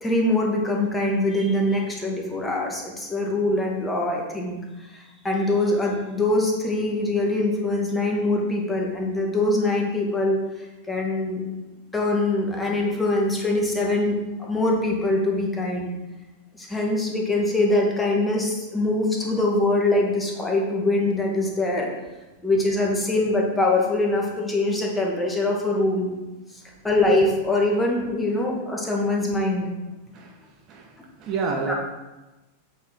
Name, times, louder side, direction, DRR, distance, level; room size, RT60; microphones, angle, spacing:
voice 1, 0.0-4.6 4.9-11.4 11.9-15.9 16.5-21.9 22.4-26.2 26.8-29.7 31.7-31.8, left 2 dB, 10° left, -1 dB, 1.4 m, -23 dB
voice 2, 30.1-31.7, right 4 dB, 35° right, 1 dB, 0.9 m, -30 dB
8.3 x 4.7 x 3.6 m, 1.1 s
figure-of-eight pair, 90°, 0 cm